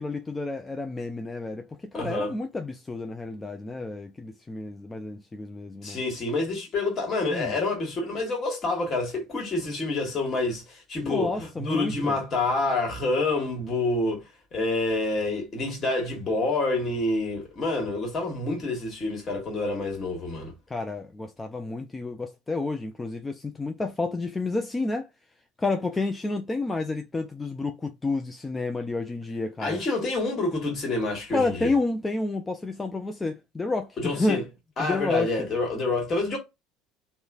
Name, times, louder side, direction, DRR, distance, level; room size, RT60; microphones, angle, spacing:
voice 1, 0.0-6.0 7.3-7.6 11.0-12.2 20.7-25.1 25.6-29.8 31.3-34.4 34.8-35.5, left 3 dB, 15° left, 0.3 m, -30 dB
voice 2, 1.9-2.3 5.8-14.2 14.5-20.5 29.6-31.7 34.0-34.4 34.8-36.4, left 2 dB, 35° left, 1.3 m, -27 dB
3.0 x 2.1 x 2.3 m
figure-of-eight pair, 65°, 0 cm